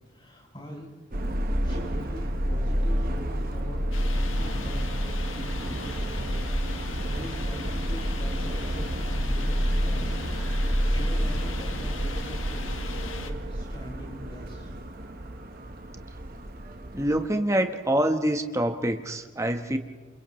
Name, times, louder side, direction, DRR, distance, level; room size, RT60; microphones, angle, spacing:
voice 1, 0.1-1.1 1.6-6.3 6.6-10.1 10.5-14.7, equal, 25° left, -4 dB, 7.6 m, -43 dB
Subway metro underground, 1.1-17.3, equal, 45° right, 1.2 m, -29 dB
sound 1, 3.9-13.3, left 3 dB, 85° left, 1.5 m, -37 dB
voice 2, 16.9-19.8, right 1 dB, 15° right, 6 dB, 1.2 m, -25 dB
29.0 x 27.5 x 3.2 m, 1.4 s
head